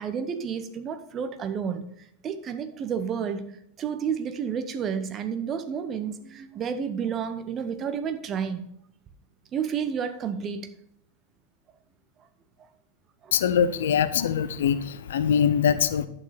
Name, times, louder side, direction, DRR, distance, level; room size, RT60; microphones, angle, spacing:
voice 1, 0.0-1.8 2.2-3.5 3.8-8.6 9.5-10.7 13.2-13.3, right 7 dB, 30° right, 0.8 m, -30 dB
voice 2, 13.3-16.1, left 8 dB, 60° left, 0.6 m, -23 dB
11.0 x 6.8 x 4.1 m
figure-of-eight pair, 90°, 0 cm